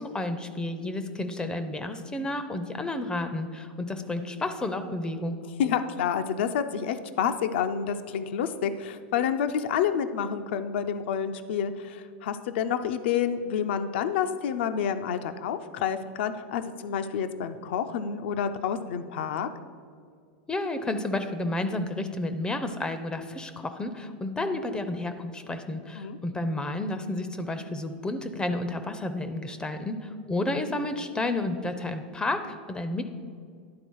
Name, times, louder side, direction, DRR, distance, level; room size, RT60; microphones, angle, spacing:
voice 1, 0.0-5.4 20.5-33.0, left 2 dB, 15° left, 9 dB, 0.5 m, -31 dB
voice 2, 5.6-19.5 26.0-26.2, left 8 dB, 70° left, 10 dB, 0.4 m, -29 dB
10.5 x 3.9 x 4.6 m, 2.1 s
hypercardioid pair, 115°, 6 cm